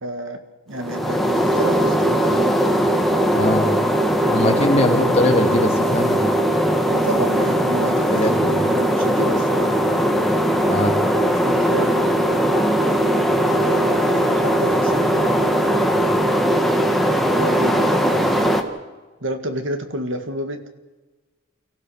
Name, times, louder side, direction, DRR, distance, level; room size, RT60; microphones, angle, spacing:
voice 1, 0.0-0.4 0.7-2.5 4.4-4.6 6.9-9.7 11.4-12.0 13.5-16.1 17.4-18.6 19.2-20.6, right 1 dB, 60° right, 7 dB, 1.9 m, -30 dB
sound 1, 0.7-18.6, equal, ahead, 1.4 m, -19 dB
voice 2, 3.3-3.7 4.3-6.2 8.1-8.7 10.7-10.9, left 1 dB, 30° left, 1 dB, 2.7 m, -21 dB
29.0 x 15.0 x 6.5 m, 1.3 s
head